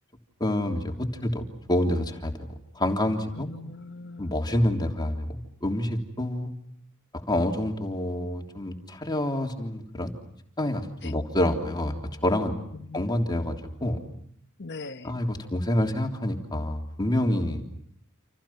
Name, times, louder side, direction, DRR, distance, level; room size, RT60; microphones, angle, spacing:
voice 1, 0.4-3.5 4.2-6.5 7.1-10.1 10.6-12.5 12.9-14.0 15.0-17.6, left 1 dB, 20° left, 3.4 m, -27 dB
voice 2, 3.3-4.3 11.0-11.1 12.7-13.1 14.6-15.1, left 3 dB, 55° left, 1.5 m, -40 dB
30.0 x 28.0 x 5.9 m
head